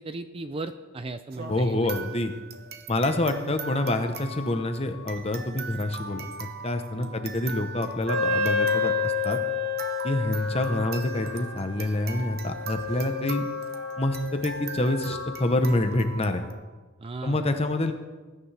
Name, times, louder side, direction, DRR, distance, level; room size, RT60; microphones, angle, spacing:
voice 1, 0.0-1.9 6.9-7.3 17.0-17.5, right 2 dB, 25° right, 10 dB, 0.4 m, -36 dB
sound 1, 1.3-16.5, right 3 dB, 45° right, 0.9 m, -40 dB
voice 2, 1.5-2.3 2.9-9.4 10.0-13.5 14.0-16.4 17.2-17.9, left 1 dB, 30° left, 6 dB, 1.0 m, -27 dB
Wind instrument woodwind instrument, 8.1-15.4, left 4 dB, 90° right, 1.5 m, -30 dB
20.0 x 9.7 x 3.4 m, 1.3 s
head